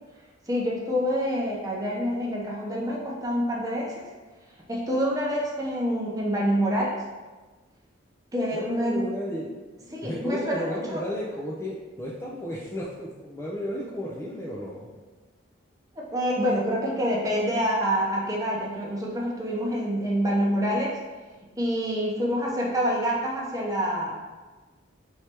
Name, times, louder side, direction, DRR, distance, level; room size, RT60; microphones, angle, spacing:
voice 1, 0.5-4.1 4.7-6.9 8.3-9.1 9.9-11.0 15.9-21.0 21.6-24.2, equal, 15° right, -4 dB, 0.7 m, -27 dB
voice 2, 8.5-9.5 10.0-14.9, equal, 15° left, -5 dB, 0.4 m, -33 dB
4.6 x 3.2 x 2.9 m, 1.3 s
head